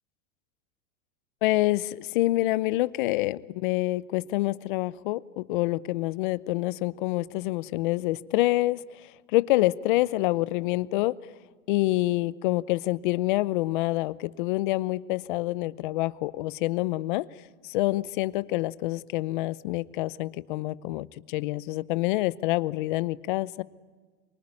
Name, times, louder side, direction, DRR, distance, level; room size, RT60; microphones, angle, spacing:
voice 1, 1.4-8.8 9.3-11.2 11.7-17.3 17.6-23.6, left 18 dB, 45° left, 19 dB, 0.7 m, -27 dB
24.5 x 24.0 x 9.8 m, 1.4 s
supercardioid pair, 175°, 35 cm